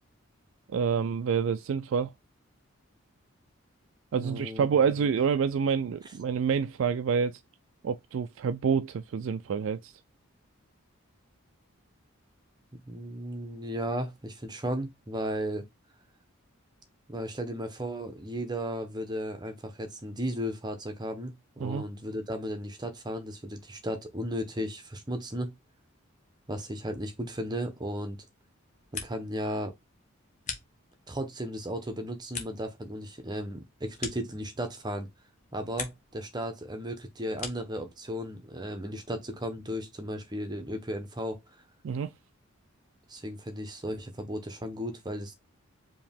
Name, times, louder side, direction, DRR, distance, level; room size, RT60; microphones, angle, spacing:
voice 1, 0.7-2.1 4.1-7.4 7.8-10.0 21.6-21.8 41.8-42.1, right 6 dB, 65° right, 0.3 m, -27 dB
voice 2, 4.2-4.7 12.9-15.7 17.1-25.5 26.5-28.2 28.9-29.7 31.1-35.1 35.5-41.4 43.1-45.3, equal, 20° right, 0.9 m, -35 dB
sound 1, 28.6-29.4 29.7-31.2 31.6-34.9 35.2-36.2 36.5-37.8, left 6 dB, 35° left, 1.0 m, -42 dB
4.8 x 2.9 x 3.4 m
head